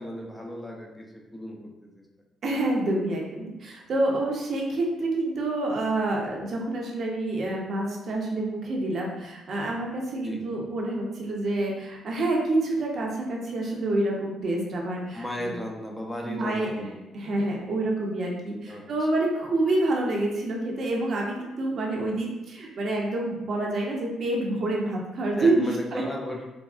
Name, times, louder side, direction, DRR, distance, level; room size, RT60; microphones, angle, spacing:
voice 1, 0.0-2.1 10.2-10.4 15.1-17.0 17.2-17.5 18.7-19.1 25.4-26.5, left 1 dB, 10° left, -1 dB, 0.4 m, -36 dB
voice 2, 2.4-15.6 16.3-16.9 17.1-26.0, right 2 dB, 55° right, -1 dB, 0.6 m, -27 dB
3.4 x 2.0 x 2.3 m, 1.0 s
cardioid pair, 90°, 0 cm